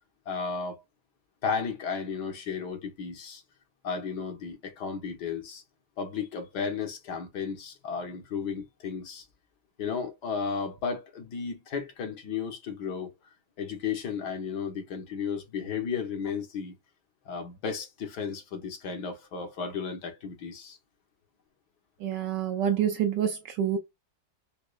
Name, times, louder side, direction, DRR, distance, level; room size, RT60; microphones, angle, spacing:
voice 1, 0.3-0.8 1.4-3.4 3.8-5.6 6.0-9.2 9.8-13.1 13.6-16.8 17.3-20.8, left 6 dB, 65° left, 1.5 m, -34 dB
voice 2, 22.0-23.8, right 9 dB, 75° right, 1.2 m, -27 dB
5.1 x 2.2 x 2.3 m
omnidirectional pair, 2.1 m